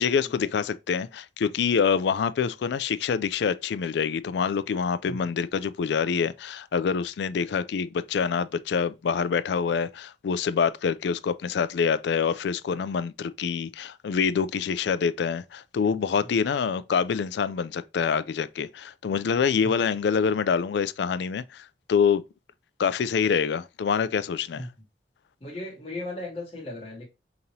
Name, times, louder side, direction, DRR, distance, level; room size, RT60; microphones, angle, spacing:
voice 1, 0.0-22.2 22.8-24.7, left 6 dB, 65° left, 0.3 m, -26 dB
voice 2, 25.4-27.1, left 2 dB, 30° left, 0.9 m, -37 dB
5.2 x 2.9 x 2.7 m
head